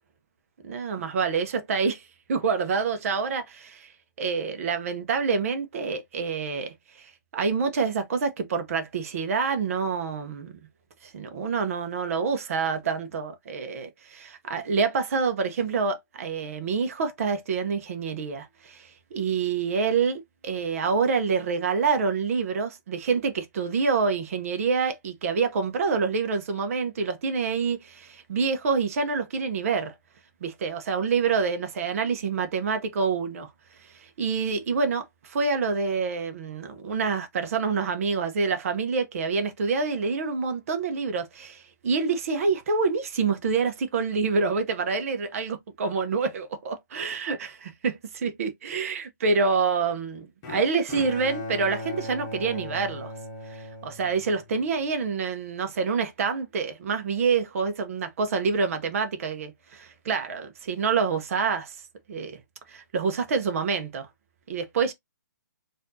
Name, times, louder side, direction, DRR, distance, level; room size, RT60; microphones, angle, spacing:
voice 1, 0.6-2.0 2.3-3.9 4.2-10.5 11.0-29.9 30.4-33.5 33.9-53.1 53.6-61.7 62.1-62.4 62.7-64.1 64.5-64.9, right 5 dB, 45° right, 0.9 m, -27 dB
Bowed string instrument, 50.4-54.6, left 2 dB, 25° left, 1.2 m, -38 dB
4.2 x 2.6 x 2.7 m
hypercardioid pair, 155°, 11 cm